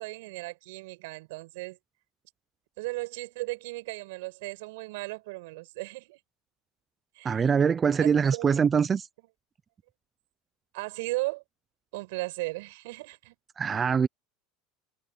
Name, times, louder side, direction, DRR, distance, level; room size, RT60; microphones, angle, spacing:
voice 1, 0.0-1.8 2.8-6.2 7.2-7.4 8.0-8.5 10.7-11.4 11.9-13.3, right 22 dB, 75° right, 6.0 m, -36 dB
voice 2, 7.2-9.1 13.6-14.1, right 6 dB, 20° right, 0.4 m, -23 dB
supercardioid pair, 165°, 0 cm